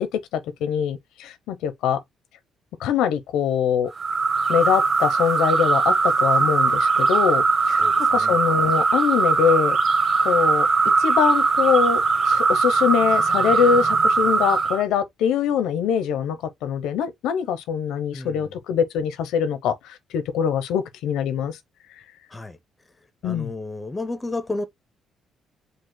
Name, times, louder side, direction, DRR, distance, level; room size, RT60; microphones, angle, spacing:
voice 1, 0.0-2.0 2.8-3.9 4.5-9.8 10.2-10.7 11.0-21.6 23.2-23.5, left 8 dB, 90° left, 0.6 m, -23 dB
sound 1, 4.0-14.8, right 4 dB, 30° right, 1.0 m, -20 dB
voice 2, 23.2-24.6, left 2 dB, 15° left, 0.5 m, -31 dB
5.2 x 2.1 x 3.7 m
cardioid pair, 170°, 0 cm